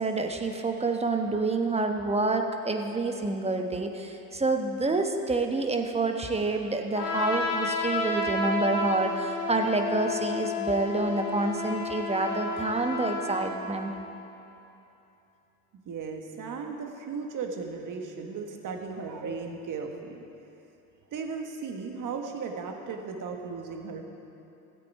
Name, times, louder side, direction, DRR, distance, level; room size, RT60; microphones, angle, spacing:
voice 1, 0.0-13.9, right 3 dB, 15° right, 4 dB, 1.0 m, -28 dB
Trumpet, 6.9-13.6, left 3 dB, 85° left, 1.7 m, -31 dB
voice 2, 15.8-20.2 21.1-24.0, right 5 dB, 45° right, 3 dB, 1.5 m, -36 dB
14.0 x 8.3 x 4.7 m, 2.9 s
hypercardioid pair, 75°, 44 cm